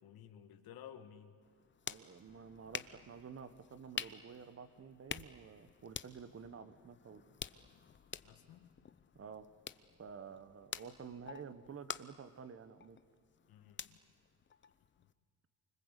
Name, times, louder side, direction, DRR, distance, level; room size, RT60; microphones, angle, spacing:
voice 1, 0.0-1.4 8.2-8.7 13.5-14.0 15.0-15.1, left 9 dB, 80° left, 8 dB, 2.0 m, -55 dB
sound 1, 1.4-15.1, left 7 dB, 30° left, 0.8 m, -49 dB
voice 2, 1.9-7.2 9.1-9.5 10.0-13.0, right 6 dB, 40° right, 12 dB, 1.4 m, -51 dB
28.5 x 25.5 x 8.4 m, 2.2 s
cardioid pair, 110°, 36 cm